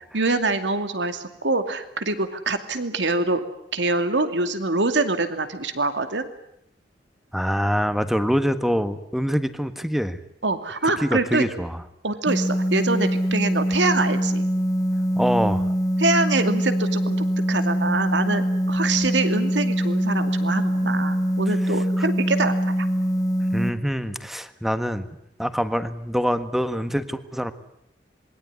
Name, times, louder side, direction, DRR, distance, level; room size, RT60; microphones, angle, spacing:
voice 1, 0.1-3.4 3.7-6.3 10.4-11.4 12.0-14.5 16.0-22.9, right 3 dB, 85° right, 9 dB, 2.5 m, -25 dB
voice 2, 7.3-10.2 10.8-11.8 15.2-15.6 22.0-22.1 23.5-25.1 25.4-27.5, equal, ahead, 11 dB, 1.5 m, -25 dB
sound 1, 12.3-23.7, equal, 20° left, 1.9 m, -23 dB
27.0 x 22.0 x 9.7 m, 0.77 s
head